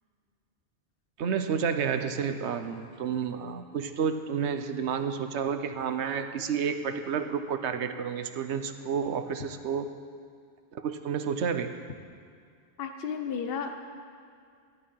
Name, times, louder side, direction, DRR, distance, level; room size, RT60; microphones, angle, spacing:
voice 1, 1.2-9.9 10.7-11.7, right 6 dB, 90° right, 9 dB, 1.1 m, -30 dB
voice 2, 12.8-13.7, left 6 dB, 60° left, 6 dB, 1.0 m, -33 dB
15.0 x 11.0 x 5.5 m, 2.3 s
omnidirectional pair, 1.1 m